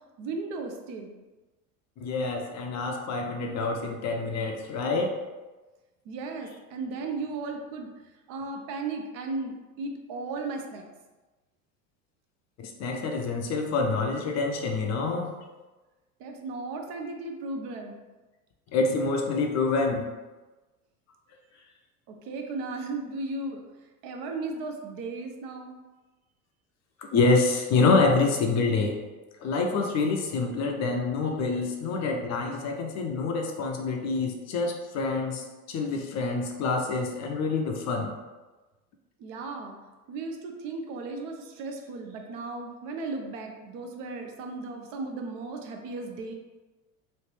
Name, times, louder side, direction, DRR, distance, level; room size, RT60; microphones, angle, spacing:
voice 1, 0.2-1.1 6.0-7.9 8.3-10.9 16.2-18.0 22.1-23.6 24.0-25.8 39.2-39.8 40.1-46.3, right 3 dB, 50° right, 3 dB, 0.6 m, -35 dB
voice 2, 2.0-5.1 12.6-15.3 18.7-20.0 27.0-29.0 29.4-38.1, left 3 dB, 40° left, 2 dB, 0.5 m, -26 dB
3.1 x 2.5 x 3.2 m, 1.2 s
hypercardioid pair, 85°, 45 cm